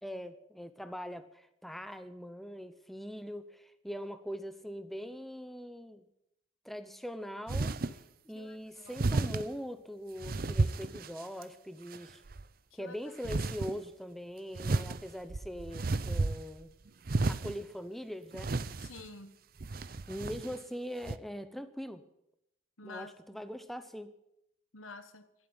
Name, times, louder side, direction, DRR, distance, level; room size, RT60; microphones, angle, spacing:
voice 1, 0.0-6.0 6.6-7.7 8.2-12.2 12.7-16.7 17.2-18.5 20.1-22.0 22.8-24.1, equal, ahead, 10 dB, 0.8 m, -42 dB
sound 1, 7.5-8.0 9.0-9.5 10.2-11.4 11.9-12.4 13.2-13.7 14.5-16.6 17.1-17.6 18.3-19.1 19.6-20.6 21.0-21.2, right 3 dB, 45° right, 0.6 m, -32 dB
voice 2, 8.3-9.0 12.7-13.0 18.8-19.4 22.8-23.4 24.7-25.3, left 3 dB, 85° left, 10 dB, 1.4 m, -49 dB
12.0 x 11.0 x 8.9 m, 0.80 s
head